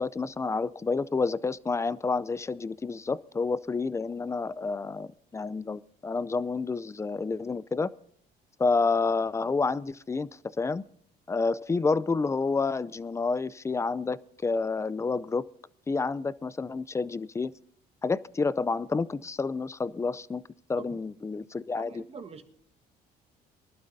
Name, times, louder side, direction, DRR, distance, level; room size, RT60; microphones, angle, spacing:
voice 1, 0.0-7.9 8.6-10.3 10.6-10.8 11.3-15.4 15.9-17.5 18.0-20.4 20.7-22.0, left 4 dB, 15° left, 19 dB, 0.4 m, -29 dB
voice 2, 21.7-22.4, right 5 dB, 35° right, 7 dB, 1.5 m, -44 dB
23.0 x 12.0 x 2.7 m, 0.70 s
cardioid pair, 110°, 17 cm